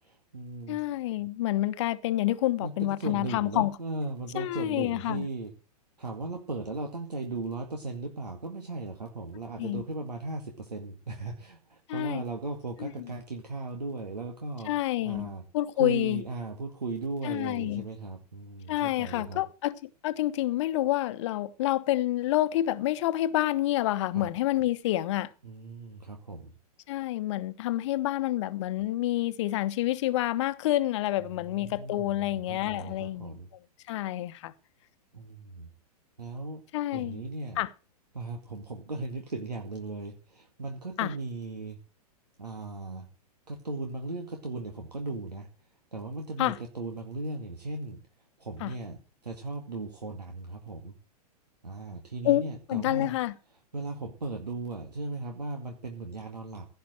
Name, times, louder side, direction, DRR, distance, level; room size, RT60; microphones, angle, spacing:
voice 1, 0.0-0.8 2.6-5.5 6.0-14.7 15.0-15.4 15.8-19.4 24.1-24.3 25.4-26.5 31.3-33.5 35.1-35.7 36.2-36.6 36.9-37.6 38.1-41.8 42.4-43.1 43.5-45.5 45.9-48.0 48.4-50.9 51.6-53.2 53.7-56.7, right 3 dB, 80° right, 2.2 m, -37 dB
voice 2, 0.7-3.7 4.3-5.3 9.6-9.8 11.9-12.2 12.8-13.1 14.6-16.2 17.2-17.8 18.7-25.3 26.9-33.4 33.9-34.5 36.7-37.2 37.6-37.7 41.0-41.1 46.4-46.6 48.6-48.7 52.2-52.4 52.7-53.3, left 15 dB, 45° left, 1.1 m, -28 dB
16.5 x 5.8 x 7.7 m
figure-of-eight pair, 105°, 20 cm